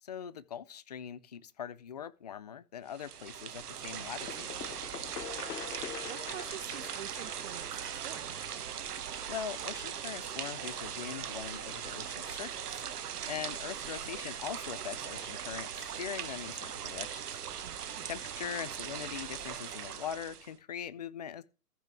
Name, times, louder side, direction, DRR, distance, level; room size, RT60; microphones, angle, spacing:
voice 1, 0.0-4.5 9.3-17.2 18.1-21.4, left 8 dB, 30° left, 0.3 m, -42 dB
sound 1, 2.9-20.5, right 8 dB, 75° right, 1.3 m, -40 dB
voice 2, 4.0-4.4 5.8-8.4 17.6-18.1, right 12 dB, 45° right, 0.8 m, -49 dB
sound 2, 4.3-9.9, left 10 dB, 80° left, 0.8 m, -45 dB
sound 3, 7.2-10.7, right 1 dB, 15° left, 3.9 m, -60 dB
14.5 x 5.9 x 3.5 m
hypercardioid pair, 135°, 47 cm